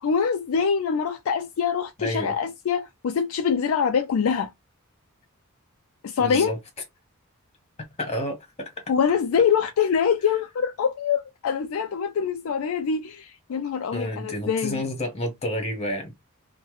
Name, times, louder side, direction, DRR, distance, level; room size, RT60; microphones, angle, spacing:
voice 1, 0.0-4.5 6.0-6.5 8.9-14.8, left 6 dB, 65° left, 0.3 m, -24 dB
voice 2, 2.0-2.3 6.2-6.6 8.0-8.7 13.9-16.1, equal, 30° left, 1.2 m, -30 dB
3.0 x 2.1 x 3.1 m
head